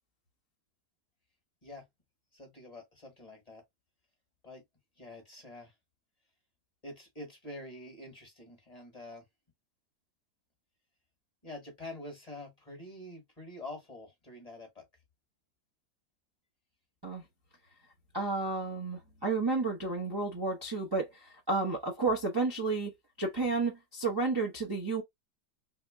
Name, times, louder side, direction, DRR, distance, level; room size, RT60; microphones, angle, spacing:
voice 1, 2.3-3.6 4.4-4.6 5.0-5.7 6.8-9.2 11.4-14.8, left 1 dB, 25° left, 1.3 m, -46 dB
voice 2, 18.1-22.9 23.2-25.0, right 3 dB, 25° right, 0.6 m, -31 dB
3.6 x 2.1 x 3.4 m
omnidirectional pair, 1.8 m